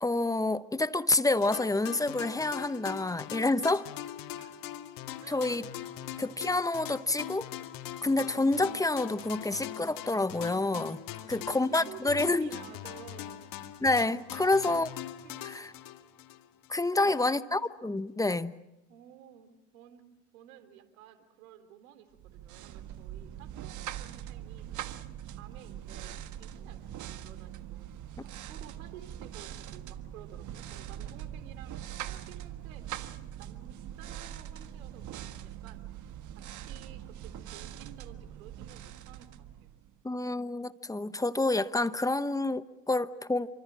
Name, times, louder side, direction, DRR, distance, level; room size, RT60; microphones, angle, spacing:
voice 1, 0.0-3.9 5.3-5.7 6.2-7.5 8.0-11.0 11.3-12.5 13.8-14.9 15.4-15.7 16.7-18.5 40.0-43.5, left 2 dB, 10° left, 14 dB, 1.0 m, -28 dB
sound 1, 1.4-16.8, left 12 dB, 55° left, 2.0 m, -42 dB
voice 2, 5.2-5.5 11.2-13.5 14.4-14.9 15.2-15.5 17.0-17.5 18.9-20.0 20.3-24.8 25.3-27.9 28.2-33.0 33.4-39.7, right 10 dB, 80° right, 9 dB, 3.5 m, -53 dB
sound 2, 22.2-40.0, right 11 dB, 45° right, 1.5 m, -42 dB
28.5 x 25.0 x 6.2 m, 0.93 s
hypercardioid pair, 90°, 41 cm